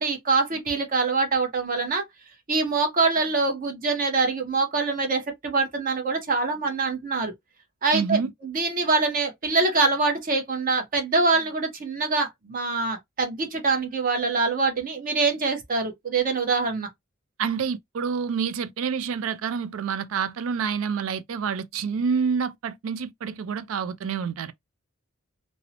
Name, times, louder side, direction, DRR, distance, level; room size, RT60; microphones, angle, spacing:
voice 1, 0.0-2.0 2.5-7.3 7.8-16.9, right 3 dB, 45° right, 0.8 m, -24 dB
voice 2, 7.9-8.3 17.4-24.5, right 6 dB, 70° right, 0.4 m, -28 dB
2.6 x 2.0 x 2.7 m
head